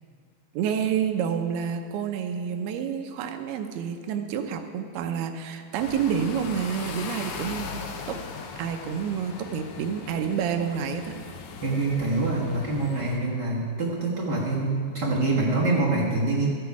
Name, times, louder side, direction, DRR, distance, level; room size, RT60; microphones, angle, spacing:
voice 1, 0.5-7.7 8.1-8.2 8.6-11.1, right 7 dB, 85° right, 6 dB, 2.8 m, -28 dB
sound 1, 5.8-13.2, left 5 dB, 75° left, 2.7 m, -38 dB
voice 2, 11.6-16.5, right 2 dB, 60° right, -5 dB, 1.1 m, -25 dB
13.5 x 10.0 x 4.7 m, 2.2 s
omnidirectional pair, 4.5 m